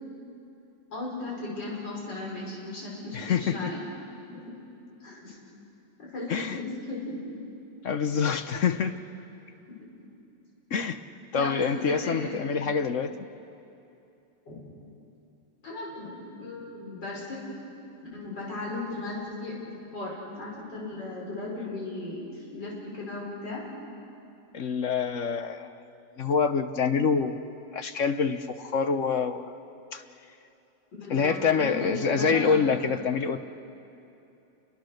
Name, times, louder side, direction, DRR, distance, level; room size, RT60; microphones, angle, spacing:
voice 1, 0.9-3.8 4.3-4.5 5.0-5.4 6.0-7.2 9.8-9.9 11.3-12.4 14.5-14.7 15.6-17.5 18.1-19.5 19.9-23.6 30.9-32.7, left 2 dB, 90° left, -4 dB, 5.7 m, -36 dB
voice 2, 3.1-3.7 6.3-6.6 7.8-8.9 10.7-11.0 11.3-13.1 24.5-25.7 26.2-27.4 27.7-29.5 29.9-30.0 31.1-33.4, left 6 dB, 55° left, 9 dB, 1.0 m, -26 dB
28.5 x 23.0 x 6.6 m, 2.8 s
omnidirectional pair, 1.9 m